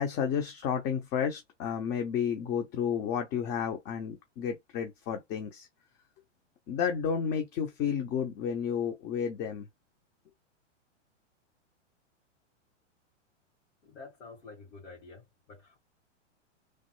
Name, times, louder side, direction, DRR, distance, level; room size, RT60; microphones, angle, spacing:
voice 1, 0.0-5.7 6.7-9.6, left 7 dB, 30° left, 0.6 m, -31 dB
voice 2, 13.8-15.8, left 3 dB, 75° left, 2.0 m, -49 dB
3.1 x 2.0 x 3.0 m
hypercardioid pair, 120°, 37 cm